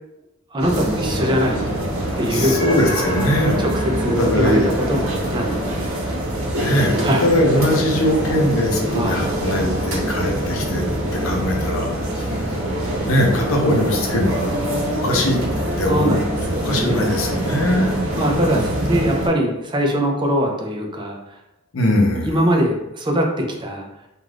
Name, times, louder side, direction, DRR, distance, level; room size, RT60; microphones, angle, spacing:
voice 1, 0.5-1.7 2.2-2.8 3.6-3.7 4.0-6.2 7.0-7.3 8.9-9.3 15.9-17.1 18.2-21.4 22.2-23.9, equal, 20° right, 1 dB, 0.4 m, -22 dB
sound 1, 0.6-19.3, right 1 dB, 80° right, 0.8 m, -24 dB
voice 2, 2.3-3.6 4.2-4.7 6.5-10.8 11.1-11.9 12.1-12.6 13.0-14.6 14.9-15.4 15.8-16.2 16.5-17.9 21.7-22.4, left 1 dB, 75° left, 0 dB, 0.6 m, -21 dB
2.4 x 2.3 x 3.3 m, 0.94 s
head